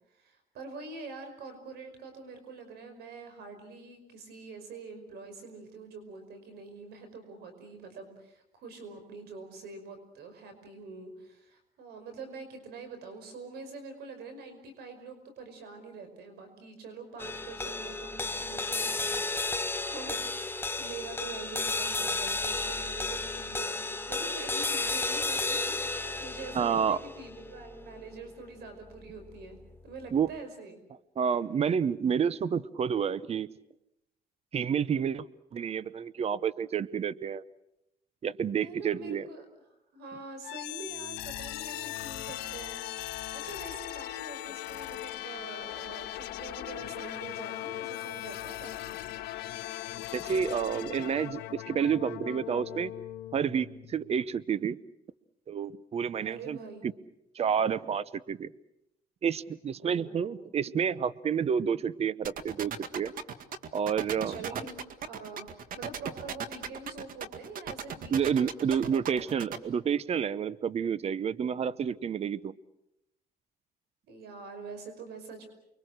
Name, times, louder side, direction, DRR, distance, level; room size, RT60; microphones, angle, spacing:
voice 1, 0.1-29.6 29.8-30.8 38.6-39.5 39.9-42.8 43.1-49.0 56.2-56.9 59.8-60.4 64.1-69.3 74.1-75.5, right 3 dB, 75° right, 8 dB, 5.4 m, -45 dB
sound 1, 17.2-29.7, left 3 dB, 15° left, 1.1 m, -33 dB
voice 2, 26.5-27.0 30.1-30.3 31.2-33.5 34.5-35.3 35.5-37.4 38.2-39.3 50.1-52.9 53.3-54.8 55.5-56.6 57.3-58.5 59.2-63.1 63.7-64.6 68.1-72.5, right 7 dB, 40° right, 18 dB, 0.8 m, -29 dB
sound 2, 40.4-54.3, left 14 dB, 85° left, 1.6 m, -39 dB
sound 3, 62.2-69.6, right 7 dB, 55° right, 2.0 m, -37 dB
29.5 x 23.0 x 6.6 m, 0.81 s
cardioid pair, 110°, 17 cm